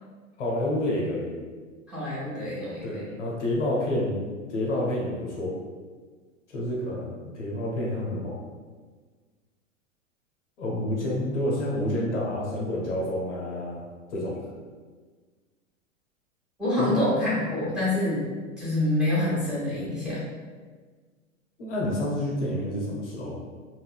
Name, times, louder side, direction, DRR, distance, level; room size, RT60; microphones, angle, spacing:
voice 1, 0.4-1.3 2.8-5.5 6.5-8.4 10.6-13.8 14.1-14.3 16.8-17.0 21.6-23.4, left 1 dB, 60° left, -4 dB, 0.7 m, -29 dB
voice 2, 1.9-3.1 16.6-18.3 18.6-20.2, left 1 dB, ahead, -10 dB, 1.2 m, -26 dB
3.6 x 2.2 x 2.2 m, 1.5 s
figure-of-eight pair, 95°, 40 cm